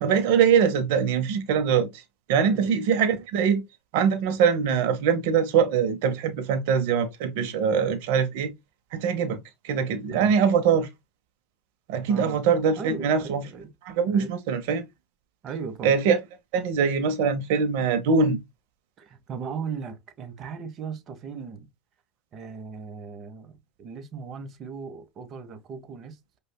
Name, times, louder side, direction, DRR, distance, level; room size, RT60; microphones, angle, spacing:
voice 1, 0.0-2.0 2.3-3.6 3.9-8.5 8.9-9.4 9.6-10.9 11.9-13.4 13.9-14.8 15.8-16.2 16.5-18.4, right 6 dB, 75° right, 0.7 m, -23 dB
voice 2, 2.4-2.8 10.1-10.3 12.1-12.4 12.8-13.7 14.0-14.3 15.4-16.0 19.0-21.7 22.3-26.2, right 5 dB, 45° right, 0.8 m, -37 dB
5.1 x 2.3 x 2.2 m
supercardioid pair, 110°, 0 cm